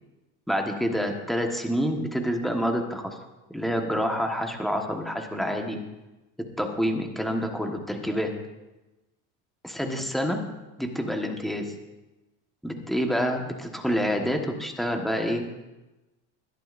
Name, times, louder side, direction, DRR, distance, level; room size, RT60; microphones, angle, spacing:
voice 1, 0.5-3.2 3.5-5.8 6.6-8.3 9.6-10.4 10.8-11.7 12.6-15.5, equal, ahead, 3 dB, 1.3 m, -27 dB
21.5 x 11.5 x 2.6 m, 1.1 s
supercardioid pair, 130°, 36 cm